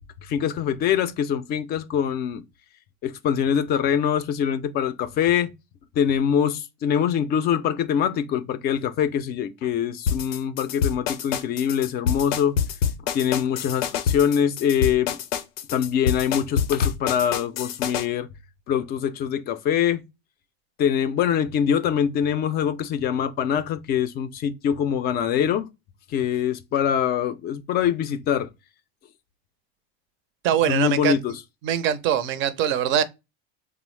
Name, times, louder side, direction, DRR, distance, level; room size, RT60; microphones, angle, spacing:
voice 1, 0.2-2.4 3.0-5.5 6.0-12.6 13.1-15.2 15.7-18.3 18.7-20.0 20.8-25.7 26.1-28.5 30.7-31.3, left 8 dB, 35° left, 0.4 m, -24 dB
sound 1, 10.1-18.1, left 7 dB, 85° left, 0.5 m, -26 dB
voice 2, 30.4-31.2 31.6-33.0, right 9 dB, 45° right, 0.5 m, -22 dB
3.4 x 2.0 x 3.0 m
supercardioid pair, 120°, 29 cm